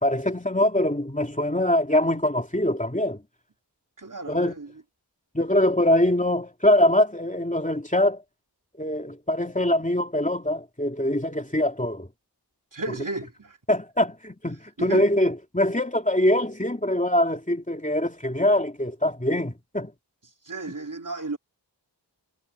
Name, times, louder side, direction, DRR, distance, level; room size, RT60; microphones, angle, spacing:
voice 1, 0.0-3.2 4.3-4.5 5.3-8.2 8.8-12.1 12.9-13.0 13.7-19.9, left 1 dB, 20° left, 3.0 m, -23 dB
voice 2, 4.0-4.7 12.7-13.6 14.8-15.1 20.5-21.4, right 3 dB, 50° right, 3.5 m, -34 dB
wide cardioid pair, 60°, 41 cm